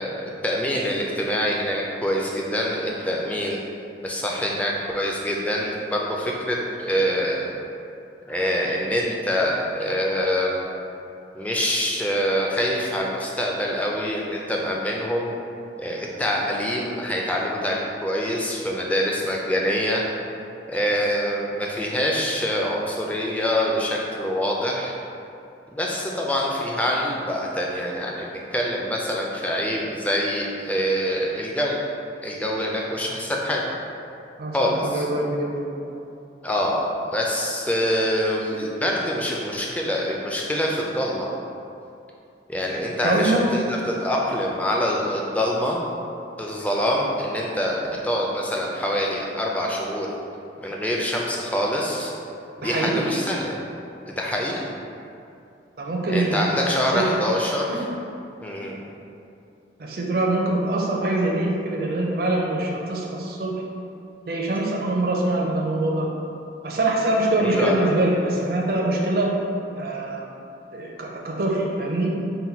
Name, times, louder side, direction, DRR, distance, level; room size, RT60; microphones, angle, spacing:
voice 1, 0.0-3.6 4.0-7.5 8.3-10.7 11.3-15.3 15.8-20.0 20.7-25.0 25.7-31.8 32.2-33.6 34.5-35.0 36.4-41.3 42.5-45.8 46.4-50.1 50.6-52.1 52.6-53.6 54.1-54.6 56.1-57.7 58.4-58.8 67.4-67.9, equal, 10° left, -2 dB, 0.3 m, -25 dB
voice 2, 34.4-35.5 35.9-36.0 43.0-43.4 52.6-53.1 55.8-56.6 56.9-57.1 57.7-57.8 59.8-63.5 64.3-66.1 66.6-69.3 69.8-70.2 70.7-72.1, right 2 dB, 55° right, -2 dB, 0.5 m, -24 dB
4.0 x 2.2 x 4.2 m, 2.6 s
head